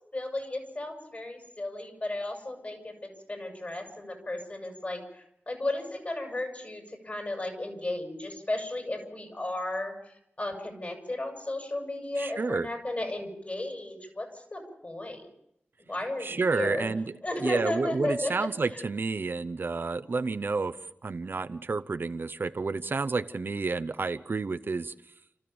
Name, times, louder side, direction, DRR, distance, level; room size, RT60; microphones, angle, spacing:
voice 1, 0.1-15.3 15.9-16.9 17.2-18.8, left 2 dB, 40° left, 3 dB, 6.5 m, -34 dB
voice 2, 12.2-12.7 16.2-17.0 17.4-24.9, right 4 dB, 60° right, 9 dB, 0.8 m, -30 dB
30.0 x 14.0 x 7.0 m, 0.79 s
wide cardioid pair, 60°, 4 cm